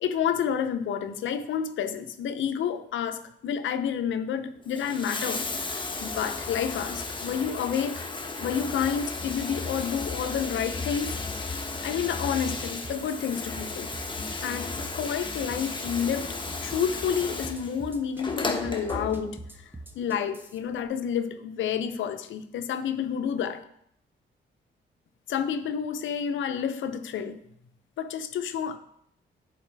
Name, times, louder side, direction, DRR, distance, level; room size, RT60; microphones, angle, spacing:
voice 1, 0.0-8.1 8.4-11.1 11.4-13.9 14.4-23.6 25.3-27.4 28.0-28.8, left 8 dB, 75° left, 9 dB, 0.5 m, -30 dB
Bathtub (filling or washing), 4.6-19.5 20.7-20.8, left 3 dB, 25° left, 0.9 m, -34 dB
sound 1, 12.8-20.6, right 2 dB, 10° right, 0.8 m, -43 dB
7.9 x 4.2 x 3.3 m, 0.71 s
cardioid pair, 65°, 20 cm